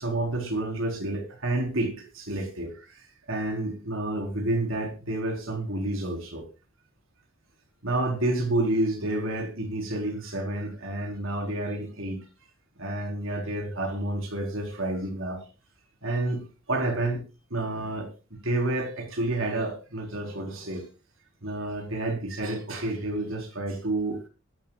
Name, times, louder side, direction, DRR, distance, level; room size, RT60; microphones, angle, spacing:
voice 1, 0.0-3.0 3.3-6.4 7.8-12.2 12.8-15.4 16.0-16.4 16.7-17.2 17.5-18.1 18.4-20.8 21.4-24.2, right 2 dB, 70° right, 3 dB, 4.3 m, -29 dB
21.5 x 12.0 x 2.4 m, 0.32 s
head